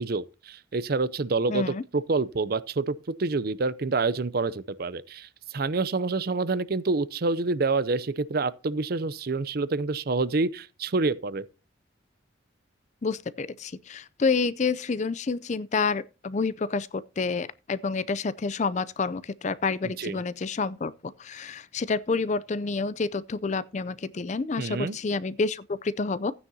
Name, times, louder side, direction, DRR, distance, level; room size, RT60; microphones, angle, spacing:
voice 1, 0.0-1.7 1.9-11.4 19.8-20.2 24.6-25.0, right 3 dB, 50° right, 0.5 m, -27 dB
voice 2, 1.5-1.8 13.0-26.3, left 4 dB, 35° left, 0.4 m, -29 dB
14.5 x 9.6 x 2.8 m
head